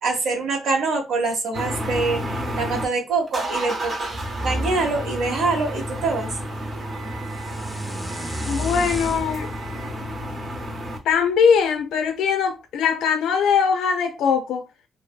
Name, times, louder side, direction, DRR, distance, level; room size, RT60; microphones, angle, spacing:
voice 1, 0.0-4.1 4.4-6.3, right 3 dB, 75° right, 0.9 m, -24 dB
sound 1, 1.5-2.8 3.3-11.0, equal, 40° right, 0.8 m, -30 dB
sound 2, 7.2-11.4, left 1 dB, 5° left, 0.5 m, -34 dB
voice 2, 8.5-9.5 11.0-14.6, left 6 dB, 80° left, 0.3 m, -21 dB
2.6 x 2.5 x 2.4 m
cardioid pair, 90°, 0 cm